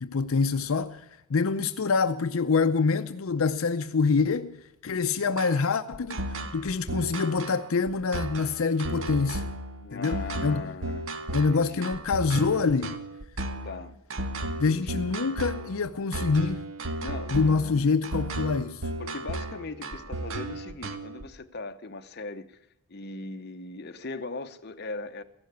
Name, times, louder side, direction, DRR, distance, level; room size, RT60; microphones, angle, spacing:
voice 1, 0.0-4.6 4.8-6.2 6.5-9.4 9.9-10.6 11.3-13.0 14.6-16.6 17.3-18.8, left 4 dB, 70° left, 0.6 m, -26 dB
sound 1, 5.4-21.2, right 2 dB, 70° right, 1.2 m, -34 dB
voice 2, 9.8-11.1 11.5-11.9 13.6-13.9 14.5-15.1 17.0-17.9 19.0-22.6 22.9-25.2, left 3 dB, 45° left, 0.8 m, -39 dB
15.0 x 11.5 x 8.1 m
head